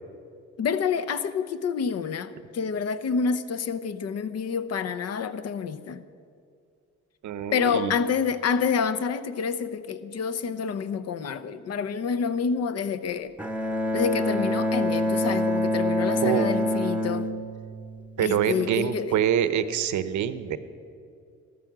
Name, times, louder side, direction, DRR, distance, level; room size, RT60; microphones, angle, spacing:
voice 1, 0.6-6.0 7.5-13.3 13.9-17.3 18.2-19.2, left 6 dB, 55° left, 0.8 m, -28 dB
voice 2, 7.2-8.0 16.2-16.5 18.2-20.6, right 9 dB, 75° right, 0.9 m, -25 dB
Bowed string instrument, 13.4-18.4, left 1 dB, 5° right, 0.9 m, -26 dB
14.5 x 13.5 x 6.0 m
cardioid pair, 90°, 30 cm